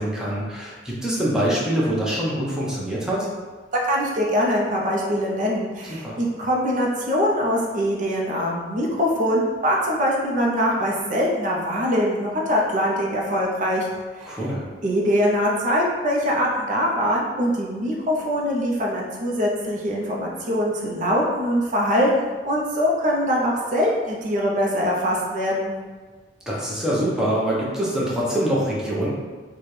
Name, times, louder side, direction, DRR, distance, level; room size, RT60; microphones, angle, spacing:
voice 1, 0.0-3.3 5.9-6.2 14.3-14.6 26.5-29.1, right 1 dB, 5° right, -6 dB, 0.7 m, -24 dB
voice 2, 3.8-13.9 14.2-14.4 14.8-25.7, equal, 45° right, -2 dB, 0.6 m, -23 dB
4.1 x 2.2 x 3.2 m, 1.4 s
head